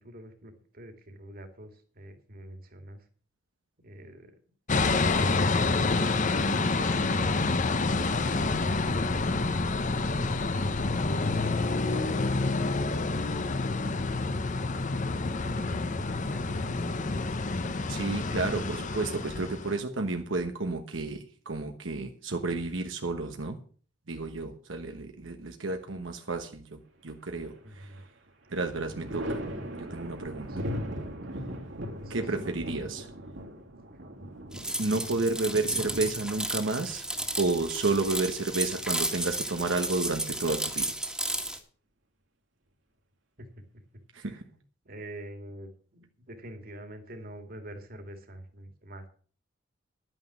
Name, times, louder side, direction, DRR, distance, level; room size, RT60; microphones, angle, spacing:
voice 1, 0.0-3.0 3.8-4.3 6.2-8.8 9.7-10.1 11.1-12.2 15.1-17.9 27.6-28.0 30.5-30.8 32.0-32.2 33.9-34.1 43.4-43.5 44.2-44.4 44.8-49.1, right 1 dB, 50° right, 6 dB, 2.4 m, -47 dB
sound 1, 4.7-19.8, left 3 dB, 40° left, 0.8 m, -28 dB
voice 2, 17.9-23.6 24.1-27.9 28.5-29.4 29.7-30.5 32.1-33.1 34.8-37.0 37.4-40.9 44.1-44.4, right 3 dB, 85° right, 5 dB, 1.2 m, -31 dB
Thunder, 27.3-28.1 28.4-38.0 39.5-40.3, equal, 70° right, 2.6 m, -39 dB
sound 2, 34.5-41.6, right 1 dB, 5° right, 1.7 m, -33 dB
11.0 x 9.4 x 6.1 m, 0.43 s
head